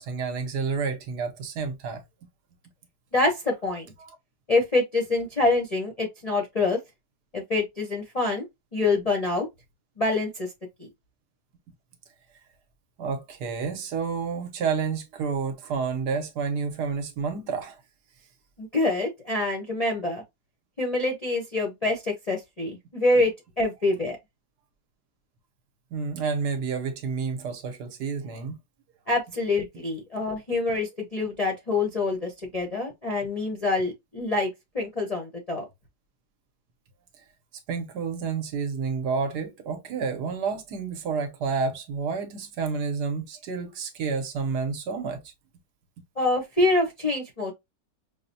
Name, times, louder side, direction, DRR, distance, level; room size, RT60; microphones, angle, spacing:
voice 1, 0.0-2.0 4.0-4.1 13.0-17.8 25.9-28.6 37.7-45.2, right 5 dB, 70° right, 1.3 m, -30 dB
voice 2, 3.1-3.9 4.5-6.8 7.3-8.4 8.7-9.5 10.0-10.5 10.8-10.9 18.6-20.2 20.8-24.2 29.1-34.5 34.7-35.6 46.2-47.5, left 2 dB, 40° left, 0.5 m, -26 dB
5.6 x 2.1 x 2.6 m
omnidirectional pair, 1.9 m